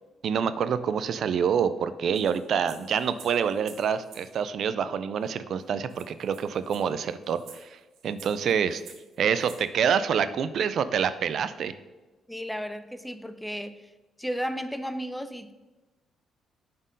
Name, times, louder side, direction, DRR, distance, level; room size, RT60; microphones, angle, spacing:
voice 1, 0.2-8.8 9.2-11.7, right 7 dB, 65° right, 0.4 m, -27 dB
sound 1, 2.1-4.3 5.3-5.4 5.6-5.7 5.9-9.6, right 7 dB, 80° right, 1.0 m, -51 dB
voice 2, 12.3-13.9 14.2-15.5, equal, 5° left, 0.5 m, -34 dB
7.1 x 4.3 x 5.2 m
cardioid pair, 90°, 0 cm